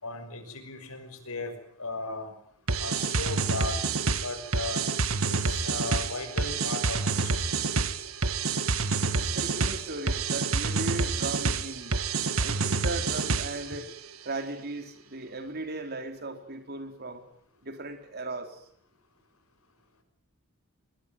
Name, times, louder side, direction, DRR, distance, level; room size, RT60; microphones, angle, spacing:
voice 1, 0.0-2.3 2.8-3.8 4.2-4.8 5.3-7.5, left 3 dB, 90° left, 7 dB, 5.9 m, -36 dB
sound 1, 2.7-13.7, right 4 dB, 70° right, 1.8 m, -28 dB
voice 2, 9.2-12.0 12.4-13.9 14.2-17.2 17.6-18.6, right 2 dB, 50° right, 6 dB, 4.2 m, -37 dB
24.0 x 21.5 x 9.5 m, 0.65 s
head